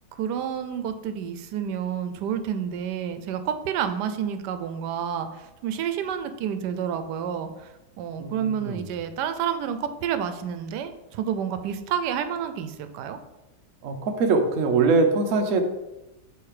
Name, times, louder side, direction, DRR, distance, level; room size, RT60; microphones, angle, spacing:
voice 1, 0.2-13.2, right 8 dB, 90° right, 9 dB, 1.2 m, -29 dB
voice 2, 8.2-8.9 13.8-15.6, right 4 dB, 60° right, 5 dB, 1.0 m, -22 dB
7.9 x 3.2 x 4.8 m, 0.99 s
omnidirectional pair, 1.7 m